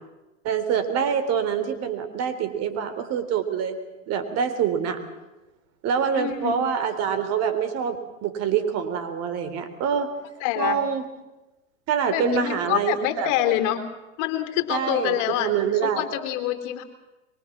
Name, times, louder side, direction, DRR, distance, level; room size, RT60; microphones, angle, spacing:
voice 1, 0.4-3.8 4.1-5.0 5.8-10.1 10.6-11.1 11.9-13.3 14.7-16.0, right 7 dB, 40° right, 9 dB, 3.7 m, -25 dB
voice 2, 6.1-6.6 10.4-10.8 12.1-13.8 14.2-15.5 15.8-16.8, left 11 dB, 45° left, 7 dB, 3.5 m, -26 dB
24.5 x 23.5 x 7.4 m, 1.0 s
hypercardioid pair, 110°, 39 cm